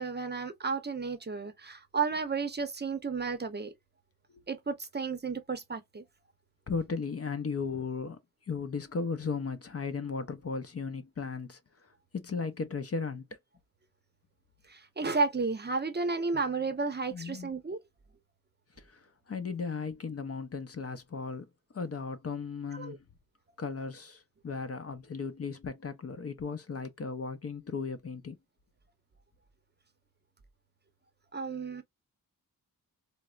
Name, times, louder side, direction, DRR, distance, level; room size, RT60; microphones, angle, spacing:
voice 1, 0.0-3.7 4.5-6.0 14.7-17.8 22.7-23.0 31.3-31.8, right 4 dB, 30° right, 0.7 m, -32 dB
voice 2, 6.7-8.2 8.5-13.3 17.1-17.5 18.8-21.5 21.7-23.0 23.6-28.4, left 5 dB, 40° left, 0.6 m, -36 dB
4.2 x 2.0 x 2.3 m
cardioid pair, 85°, 37 cm